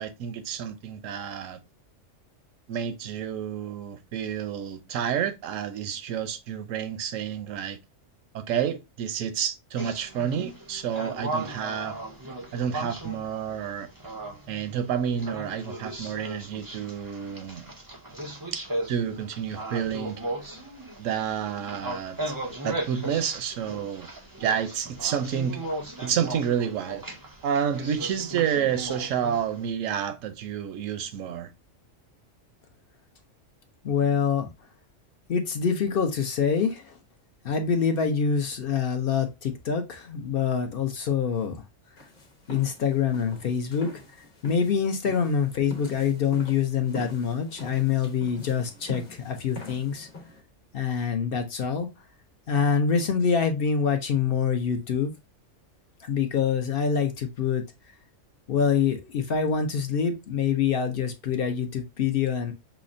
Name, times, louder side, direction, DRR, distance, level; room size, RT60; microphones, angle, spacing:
voice 1, 0.0-1.6 2.7-7.8 8.3-12.0 12.5-13.9 14.5-17.7 18.5-18.6 18.9-20.2 21.0-22.3 22.6-24.1 24.4-25.6 26.0-27.0 27.4-31.5, right 8 dB, 75° right, 1.0 m, -29 dB
sound 1, 9.8-29.7, right 2 dB, 25° right, 0.5 m, -37 dB
voice 2, 33.8-34.5 35.3-37.0 37.4-41.6 42.5-50.1 50.7-51.9 52.5-55.1 56.0-57.6 58.5-62.5, left 6 dB, 60° left, 0.6 m, -25 dB
sound 2, 42.0-50.4, left 2 dB, 40° left, 1.0 m, -44 dB
5.7 x 2.0 x 2.5 m
omnidirectional pair, 1.4 m